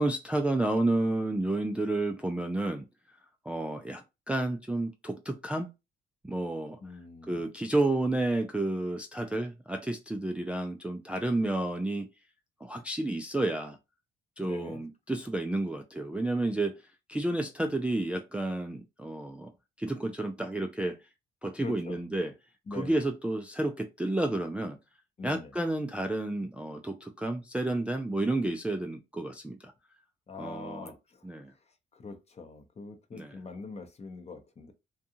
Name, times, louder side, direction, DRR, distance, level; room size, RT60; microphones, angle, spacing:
voice 1, 0.0-2.8 3.4-5.7 6.2-6.8 7.3-12.1 12.6-13.8 14.4-16.8 17.1-19.5 19.8-21.0 21.4-22.3 22.7-24.8 25.2-29.7 30.4-30.9 31.2-31.5 33.1-33.4, right 2 dB, 5° right, 0.3 m, -31 dB
voice 2, 6.8-7.4 14.4-14.8 21.6-22.0 22.7-23.0 25.2-25.5 30.3-31.3 31.9-34.7, left 3 dB, 30° left, 0.7 m, -43 dB
2.6 x 2.3 x 2.7 m
cardioid pair, 90°, 20 cm